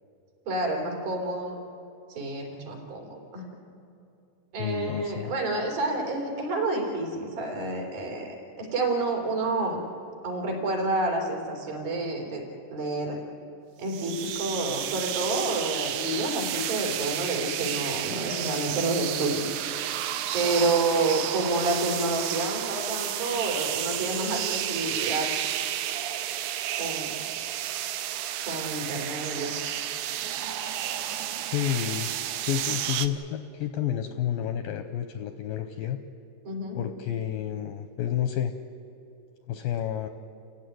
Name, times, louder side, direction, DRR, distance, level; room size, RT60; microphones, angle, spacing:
voice 1, 0.5-1.6 2.1-3.6 4.5-9.8 10.2-12.4 12.7-13.2 13.8-19.5 20.3-25.3 26.8-27.2 27.7-27.8 28.5-29.6 36.5-36.8, right 2 dB, 60° right, 1 dB, 5.2 m, -29 dB
voice 2, 4.6-5.3 31.5-36.0 36.8-38.5 39.5-40.1, left 10 dB, 80° left, 8 dB, 2.1 m, -30 dB
sound 1, 13.9-33.1, right 11 dB, 75° right, 2.2 m, -31 dB
29.5 x 15.5 x 9.4 m, 2.8 s
omnidirectional pair, 4.9 m